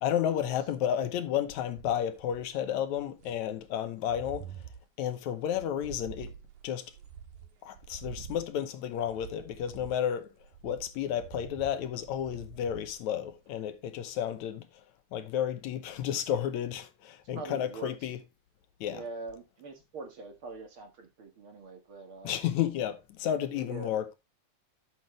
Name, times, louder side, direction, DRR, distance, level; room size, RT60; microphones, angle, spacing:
voice 1, 0.0-4.5 5.0-6.3 6.6-6.8 7.6-10.3 10.6-14.7 15.1-18.2 18.8-19.0 22.2-24.1, left 10 dB, 75° left, 2.2 m, -32 dB
sound 1, 1.8-3.5 3.9-4.8 5.5-13.6 14.0-14.4, right 8 dB, 80° right, 2.7 m, -47 dB
voice 2, 17.3-17.9 18.9-22.3 23.5-23.9, right 3 dB, 50° right, 2.2 m, -43 dB
12.0 x 6.4 x 3.2 m
omnidirectional pair, 3.4 m